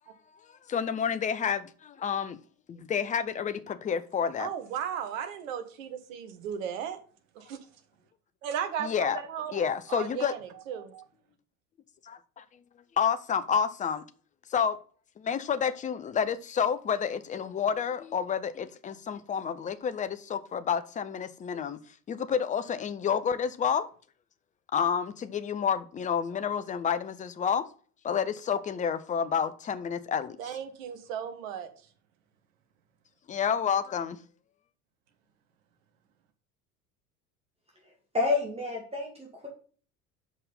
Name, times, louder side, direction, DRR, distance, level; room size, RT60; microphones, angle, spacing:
voice 1, 0.7-2.4 2.7-4.5 8.8-9.2 9.5-10.3 12.0-12.4 13.0-14.0 14.5-14.8 15.2-21.8 22.1-23.9 24.7-27.7 28.0-30.4 33.3-34.2, left 7 dB, 15° left, 0.5 m, -29 dB
voice 2, 4.4-7.0 7.3-7.6 8.4-11.0 30.4-31.7, right 8 dB, 55° right, 1.5 m, -36 dB
voice 3, 37.8-39.5, left 3 dB, 15° right, 2.1 m, -30 dB
6.2 x 5.4 x 5.4 m
figure-of-eight pair, 70°, 45 cm